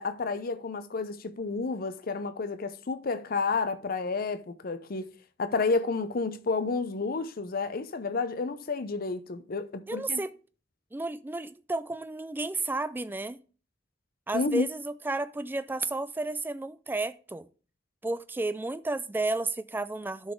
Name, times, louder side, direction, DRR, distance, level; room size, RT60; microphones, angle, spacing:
voice 1, 0.0-5.1 5.4-10.2 14.3-14.6, left 4 dB, 50° left, 0.6 m, -30 dB
voice 2, 9.9-10.3 10.9-13.4 14.3-17.5 18.0-20.3, right 2 dB, 10° right, 0.3 m, -32 dB
11.5 x 4.0 x 3.7 m
head